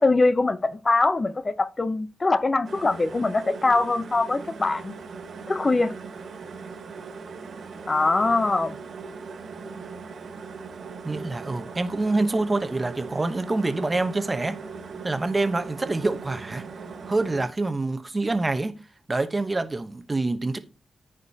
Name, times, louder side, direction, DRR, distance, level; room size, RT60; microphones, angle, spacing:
voice 1, 0.0-4.9 5.5-5.9 7.9-8.8, left 3 dB, 30° left, 0.7 m, -22 dB
sound 1, 2.6-17.5, right 5 dB, 70° right, 1.2 m, -39 dB
voice 2, 11.0-14.6 15.0-16.7 17.0-18.8 19.1-20.6, right 2 dB, 25° right, 1.0 m, -26 dB
14.5 x 5.0 x 2.8 m
wide cardioid pair, 100°, 0 cm